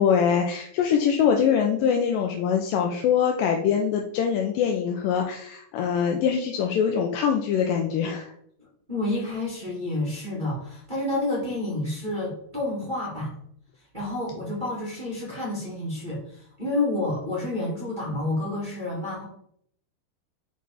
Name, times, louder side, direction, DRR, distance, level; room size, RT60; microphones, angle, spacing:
voice 1, 0.0-8.3, left 7 dB, 80° left, 2 dB, 2.1 m, -23 dB
voice 2, 8.9-13.3 13.9-19.2, left 2 dB, 30° right, -6 dB, 0.8 m, -29 dB
5.9 x 4.7 x 4.1 m, 0.68 s
omnidirectional pair, 4.4 m